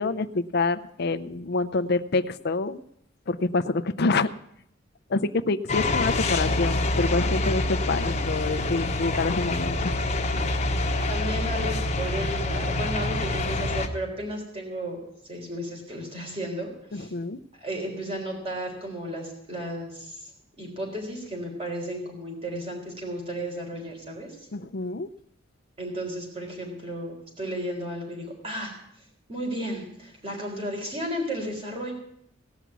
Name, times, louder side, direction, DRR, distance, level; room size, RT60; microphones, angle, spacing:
voice 1, 0.0-2.8 3.3-4.3 5.1-10.0 16.9-17.4 24.5-25.1, left 3 dB, 55° left, 12 dB, 0.6 m, -27 dB
sound 1, 5.7-13.9, left 2 dB, 35° left, 1.1 m, -26 dB
voice 2, 11.1-15.0 15.2-17.1 17.6-20.3 20.6-24.4 25.8-28.7 29.3-31.9, equal, 30° right, 0 dB, 4.0 m, -34 dB
17.5 x 6.1 x 8.2 m, 0.72 s
head